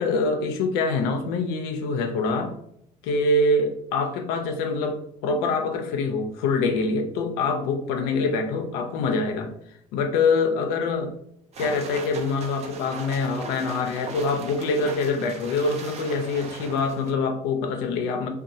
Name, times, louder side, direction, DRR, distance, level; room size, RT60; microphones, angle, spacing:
voice 1, 0.0-2.6 3.0-9.5 9.9-11.1 11.6-18.3, left 3 dB, 90° left, 5 dB, 0.5 m, -25 dB
sound 1, 11.5-17.1, right 4 dB, 45° right, 0.5 m, -39 dB
2.6 x 2.2 x 2.6 m, 0.71 s
supercardioid pair, 90°, 15 cm